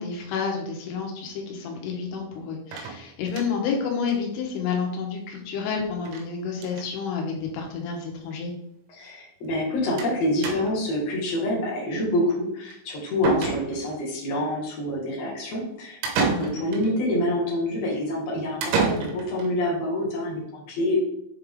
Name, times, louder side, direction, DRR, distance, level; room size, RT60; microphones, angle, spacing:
voice 1, 0.0-8.5 16.3-16.5, left 5 dB, 90° left, 1 dB, 3.7 m, -30 dB
sound 1, 2.7-3.7 4.1-4.2 4.5-4.6 4.8-4.9 6.1-6.3 6.5-6.9 7.8-7.9 8.1-8.2 10.0-10.2 10.4-10.9 12.7-12.8 13.2-14.0 16.0-16.9 18.6-19.5, right 4 dB, 90° right, 3.5 m, -28 dB
voice 2, 8.9-21.0, left 1 dB, 70° left, -3 dB, 1.5 m, -27 dB
8.5 x 3.6 x 3.6 m, 0.74 s
omnidirectional pair, 5.4 m